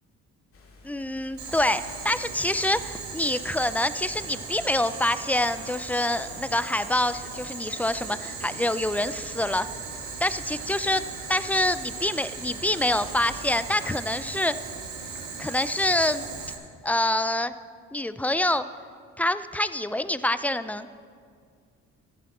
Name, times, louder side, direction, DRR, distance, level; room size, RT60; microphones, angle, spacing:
sound 1, 0.5-13.9, left 1 dB, 50° left, 2.0 m, -50 dB
voice 1, 0.8-9.7 10.2-14.5 15.4-16.2 16.8-17.5 17.9-18.7 19.2-20.9, left 1 dB, 5° left, 13 dB, 0.3 m, -26 dB
Boiling, 1.4-16.5, right 5 dB, 65° right, 1.7 m, -38 dB
14.0 x 11.0 x 4.2 m, 2.2 s
cardioid pair, 90°, 30 cm